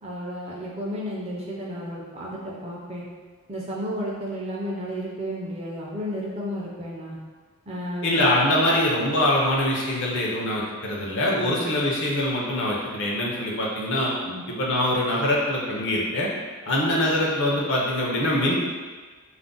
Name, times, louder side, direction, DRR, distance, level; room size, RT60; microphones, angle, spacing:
voice 1, 0.0-3.1 3.5-7.2 7.7-8.2 11.4-11.6 14.2-14.4, equal, 30° right, -4 dB, 0.4 m, -32 dB
voice 2, 8.0-14.1 14.5-16.3 16.7-18.6, left 1 dB, 55° left, -4 dB, 0.6 m, -23 dB
2.4 x 2.0 x 3.7 m, 1.4 s
head